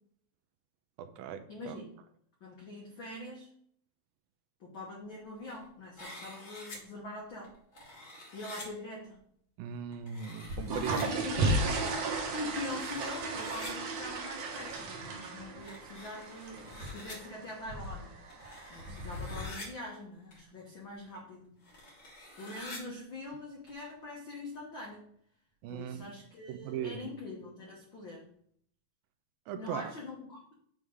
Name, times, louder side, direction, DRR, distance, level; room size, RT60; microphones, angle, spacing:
voice 1, 1.0-1.8 9.6-11.2 25.6-26.0 26.5-27.1 29.5-29.9, right 8 dB, 85° right, 9 dB, 2.3 m, -39 dB
voice 2, 1.5-1.9 2.4-3.5 4.6-7.5 8.3-9.2 11.0-11.6 12.3-18.1 18.7-21.6 22.3-25.1 25.7-28.3 29.5-30.5, left 2 dB, 75° left, -2 dB, 1.1 m, -43 dB
sound 1, 5.2-5.7 6.0-6.8 7.4-8.7 9.9-11.0 12.4-13.7 14.6-14.8 15.6-17.2 18.0-19.7 20.3-20.4 20.9-21.0 21.6-22.8 23.7-23.8, left 1 dB, 35° left, 2.6 m, -48 dB
sound 2, 10.4-19.4, right 2 dB, 60° right, 2.4 m, -35 dB
8.0 x 3.7 x 6.1 m, 0.65 s
omnidirectional pair, 4.3 m